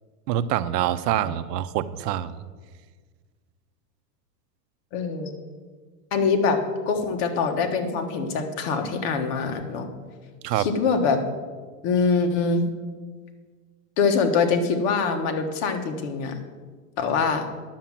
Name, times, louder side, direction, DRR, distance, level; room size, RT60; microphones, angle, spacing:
voice 1, 0.3-2.4 10.4-10.7, right 12 dB, 80° right, 14 dB, 0.8 m, -25 dB
voice 2, 4.9-5.3 6.1-6.6 6.9-9.9 10.5-11.2 11.8-12.6 14.0-16.4 17.0-17.5, left 5 dB, 45° left, 5 dB, 1.4 m, -24 dB
10.0 x 7.4 x 7.3 m, 1.5 s
supercardioid pair, 155°, 48 cm